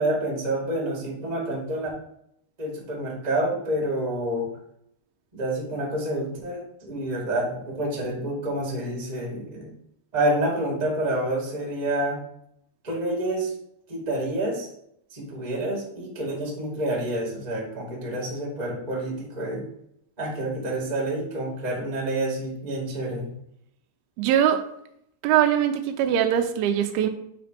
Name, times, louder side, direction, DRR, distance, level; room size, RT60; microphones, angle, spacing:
voice 1, 0.0-1.9 2.6-4.5 5.3-9.7 10.1-12.2 12.8-13.5 13.9-14.7 15.1-19.6 20.2-23.3, right 1 dB, 30° right, -3 dB, 0.7 m, -28 dB
voice 2, 24.2-24.6 25.2-27.1, right 10 dB, 85° right, 5 dB, 2.2 m, -21 dB
8.9 x 3.0 x 5.0 m, 0.73 s
omnidirectional pair, 5.0 m